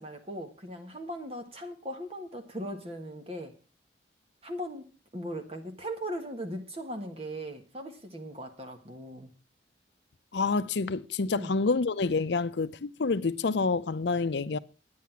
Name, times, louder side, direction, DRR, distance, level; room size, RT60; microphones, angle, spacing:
voice 1, 0.0-3.5 4.4-4.8 5.1-9.3 11.3-11.5, equal, 30° right, 1.5 m, -38 dB
voice 2, 10.3-14.6, left 4 dB, 70° left, 0.6 m, -28 dB
10.0 x 9.5 x 5.8 m
head